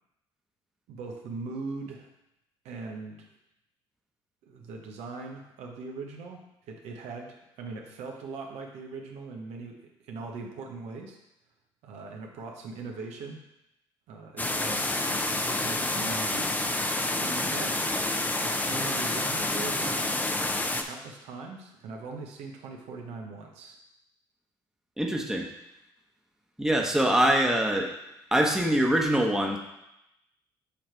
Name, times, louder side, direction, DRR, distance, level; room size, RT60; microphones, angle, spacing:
voice 1, 0.9-2.1 2.6-3.3 4.4-11.2 11.8-13.4 14.1-16.5 17.0-17.8 18.4-20.2 20.8-23.8, right 4 dB, 70° right, 1 dB, 0.9 m, -40 dB
sound 1, 14.4-20.8, left 2 dB, 15° left, 0.6 m, -28 dB
voice 2, 25.0-25.5 26.6-27.9 28.3-29.6, right 1 dB, 5° right, 0 dB, 1.1 m, -24 dB
7.0 x 3.2 x 4.5 m, 0.86 s
hypercardioid pair, 60°, 12 cm